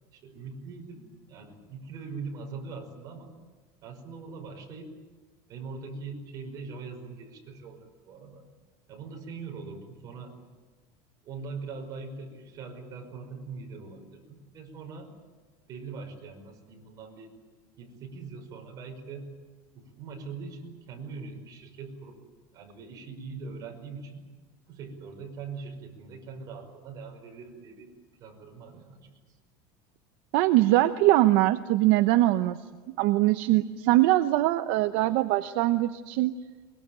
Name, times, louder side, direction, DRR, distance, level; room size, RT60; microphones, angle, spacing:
voice 1, 0.1-3.3 3.8-4.9 5.5-8.5 8.9-10.4 11.2-15.1 15.7-17.3 17.8-19.3 19.7-22.2 22.5-24.3 24.7-27.9 28.2-29.1, right 4 dB, 35° right, 2 dB, 5.4 m, -42 dB
voice 2, 30.3-32.6 32.9-36.3, right 16 dB, 60° right, 9 dB, 0.9 m, -22 dB
23.0 x 22.5 x 9.1 m, 1.4 s
cardioid pair, 165°, 11 cm